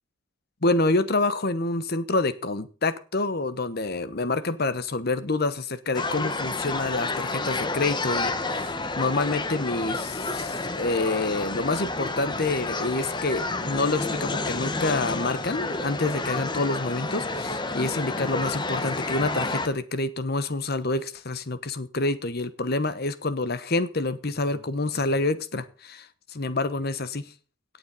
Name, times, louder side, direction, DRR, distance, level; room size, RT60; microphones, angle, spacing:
voice 1, 0.6-27.3, left 2 dB, 50° left, 14 dB, 1.1 m, -27 dB
sound 1, 5.9-19.7, left 3 dB, 20° left, 1.1 m, -30 dB
17.5 x 7.3 x 5.6 m, 0.36 s
head